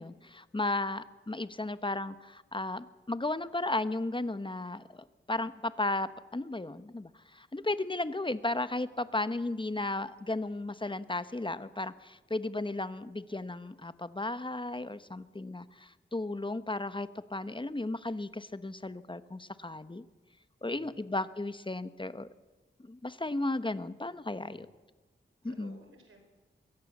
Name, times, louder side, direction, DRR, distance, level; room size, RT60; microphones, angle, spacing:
voice 1, 0.0-5.0 5.3-20.0 20.6-22.3 22.8-24.7 25.4-25.8, left 2 dB, 25° left, 13 dB, 1.2 m, -35 dB
voice 2, 20.6-21.0 24.4-24.7 25.4-26.3, right 3 dB, 85° right, 5 dB, 4.9 m, -57 dB
23.0 x 16.5 x 7.4 m, 1.2 s
cardioid pair, 45°, 20 cm